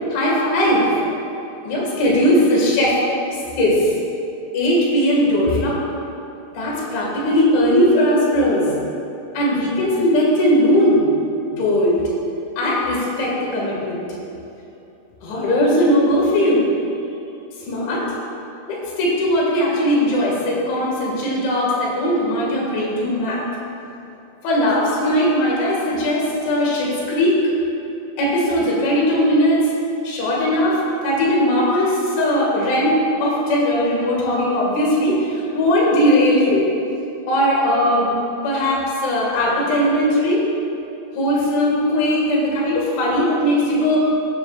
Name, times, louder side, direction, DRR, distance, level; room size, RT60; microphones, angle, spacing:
voice 1, 0.1-1.1 1.6-3.0 3.3-3.9 4.5-5.8 6.5-8.7 9.3-11.0 11.6-12.1 12.6-14.1 15.2-16.6 17.7-18.1 18.7-23.4 24.4-27.4 28.2-29.7 30.0-36.7 37.3-38.2 38.4-40.4 41.2-44.1, equal, 85° left, -4 dB, 4.5 m, -19 dB
15.0 x 9.8 x 2.5 m, 2.9 s
omnidirectional pair, 5.2 m